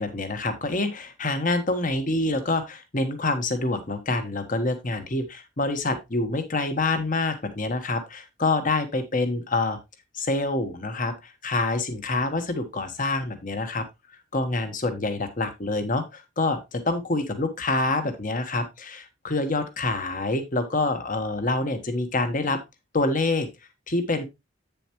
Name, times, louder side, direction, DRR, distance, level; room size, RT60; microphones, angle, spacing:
voice 1, 0.0-9.8 10.1-13.9 14.3-22.6 22.9-23.5 23.9-24.2, left 2 dB, 40° left, 9 dB, 1.3 m, -26 dB
8.6 x 7.0 x 3.0 m, 0.22 s
head